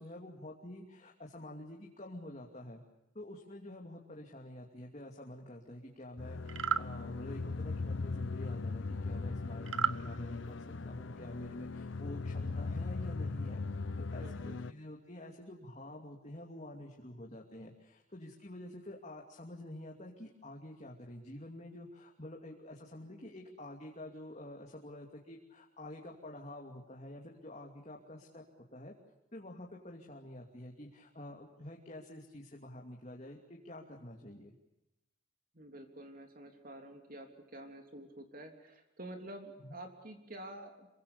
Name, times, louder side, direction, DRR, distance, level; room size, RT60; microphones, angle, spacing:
voice 1, 0.0-2.8 3.1-13.6 14.0-28.4 28.7-28.9 29.3-34.5 39.6-39.8, left 1 dB, 35° left, 0 dB, 2.8 m, -48 dB
sound 1, 6.2-14.7, left 3 dB, 70° left, 0.8 m, -39 dB
sound 2, 6.5-6.9 9.7-10.0, right 6 dB, 85° right, 1.1 m, -31 dB
voice 2, 14.2-14.6 35.5-40.9, right 1 dB, 45° right, 5 dB, 3.3 m, -49 dB
28.0 x 24.0 x 6.9 m, 0.92 s
head